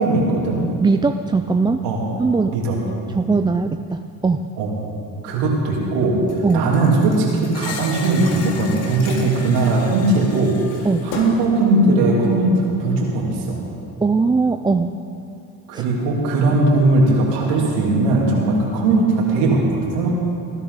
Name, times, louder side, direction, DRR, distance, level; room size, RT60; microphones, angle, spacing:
voice 1, 0.0-0.6 1.8-2.0 2.5-2.8 4.6-4.7 5.2-13.6 15.7-20.2, right 2 dB, 85° right, -3 dB, 3.0 m, -19 dB
voice 2, 0.8-1.8 2.2-2.6 3.1-4.5 6.4-6.7 10.8-11.1 14.0-15.0 15.7-15.8 18.5-18.6, right 4 dB, 10° right, 7 dB, 0.4 m, -20 dB
Thump thud, 6.3-10.3 10.7-11.5, left 3 dB, 90° left, 2.2 m, -36 dB
Screech, 7.5-11.5, left 6 dB, 35° left, 1.0 m, -37 dB
19.5 x 11.5 x 4.1 m, 2.5 s
supercardioid pair, 70°, 41 cm